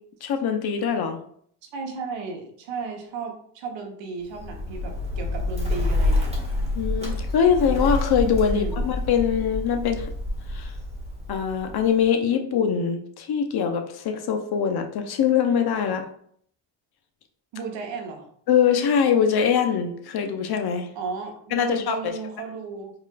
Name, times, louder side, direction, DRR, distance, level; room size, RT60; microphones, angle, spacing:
voice 1, 0.2-1.2 6.8-10.1 10.5-10.7 11.3-16.1 18.5-20.9 21.5-22.1, left 7 dB, 50° left, 6 dB, 0.7 m, -23 dB
voice 2, 1.6-6.4 8.5-8.9 17.5-18.3 20.9-22.9, right 4 dB, 65° right, 3 dB, 1.0 m, -34 dB
Bird, 4.3-12.1, left 1 dB, 15° right, 1.2 m, -27 dB
4.7 x 2.5 x 2.3 m, 0.62 s
supercardioid pair, 75°, 48 cm